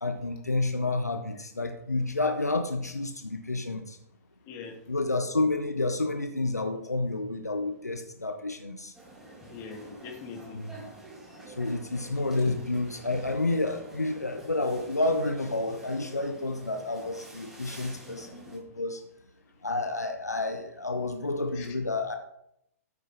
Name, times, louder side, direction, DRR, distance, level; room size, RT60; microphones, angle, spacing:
voice 1, 0.0-4.0 4.9-8.9 10.5-10.7 11.5-19.0 19.6-22.2, left 2 dB, 85° left, 6 dB, 1.1 m, -30 dB
voice 2, 4.4-4.8 9.5-10.6 12.4-12.5 21.5-21.7, left 5 dB, 35° left, 1 dB, 3.2 m, -42 dB
sound 1, 8.9-18.6, right 2 dB, 5° right, 5.4 m, -48 dB
13.5 x 9.5 x 3.8 m, 0.77 s
figure-of-eight pair, 115°, 9 cm